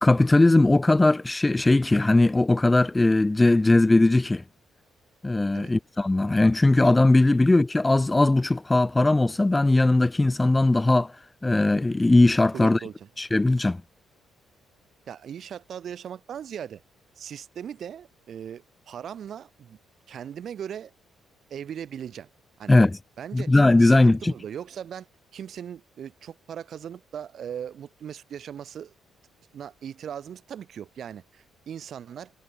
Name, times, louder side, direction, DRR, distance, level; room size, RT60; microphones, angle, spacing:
voice 1, 0.0-4.4 5.2-11.1 11.4-12.8 13.2-13.8 22.7-23.0 23.3-24.3, left 2 dB, 15° left, 0.7 m, -19 dB
voice 2, 12.5-13.1 15.1-16.8 17.2-19.8 20.1-20.9 21.5-22.3 22.6-22.7 23.2-23.5 23.8-25.1 25.3-28.9 29.5-32.3, right 9 dB, 60° right, 6.3 m, -38 dB
cardioid pair, 90°, 0 cm